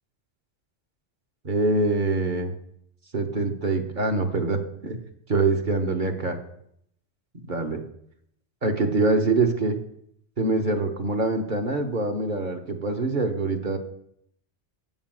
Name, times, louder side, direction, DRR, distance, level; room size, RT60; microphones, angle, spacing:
voice 1, 1.4-2.5 3.1-5.0 5.3-6.4 7.5-7.8 8.6-9.8 10.4-13.8, right 3 dB, 45° right, 3 dB, 1.2 m, -24 dB
8.3 x 7.2 x 7.5 m, 0.72 s
omnidirectional pair, 1.2 m